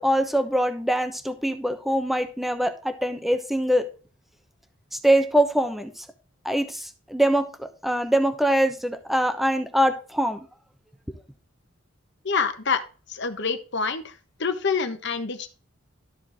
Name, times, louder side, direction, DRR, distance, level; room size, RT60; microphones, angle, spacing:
voice 1, 0.0-3.8 4.9-6.0 6.4-10.4, right 1 dB, ahead, 7 dB, 0.9 m, -23 dB
voice 2, 12.2-12.8 13.1-14.1 14.4-15.5, left 5 dB, 60° left, 8 dB, 1.3 m, -26 dB
13.0 x 4.7 x 3.6 m, 0.35 s
head